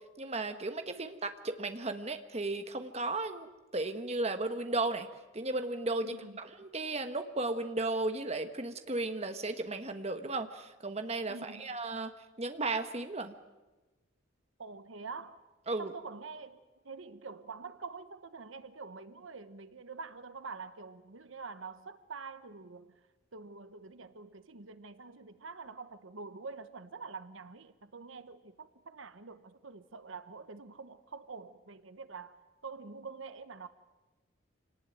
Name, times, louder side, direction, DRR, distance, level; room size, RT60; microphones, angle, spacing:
voice 1, 0.2-3.5 3.7-5.1 5.3-12.1 12.4-13.3 15.7-15.9, right 2 dB, 30° right, 1.3 m, -35 dB
voice 2, 6.0-6.4 11.3-11.7 14.6-15.4 15.8-23.0 23.3-32.4 32.6-33.7, right 4 dB, 80° right, 1.2 m, -46 dB
26.5 x 19.0 x 9.2 m
head